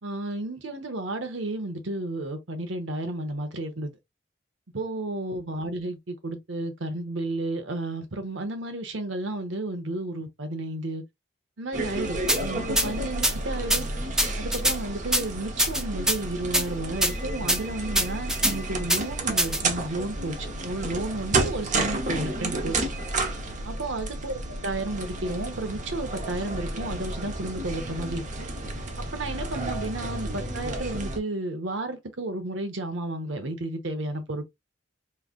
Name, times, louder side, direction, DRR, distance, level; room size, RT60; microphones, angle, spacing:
voice 1, 0.0-3.9 4.7-11.0 11.6-13.9 14.4-22.9 23.6-28.5 29.0-34.4, right 2 dB, 85° right, 0.9 m, -32 dB
sound 1, 11.7-31.2, right 2 dB, 40° right, 0.8 m, -31 dB
sound 2, 12.3-12.4 12.8-12.9 13.2-13.3 13.7-13.8 14.2-14.8 15.1-15.2 15.6-16.2 16.5-16.6 17.0-17.1 17.5-17.6 17.9-18.5 18.9-19.0 19.4-19.6, equal, 5° right, 0.4 m, -22 dB
3.7 x 3.2 x 2.4 m
head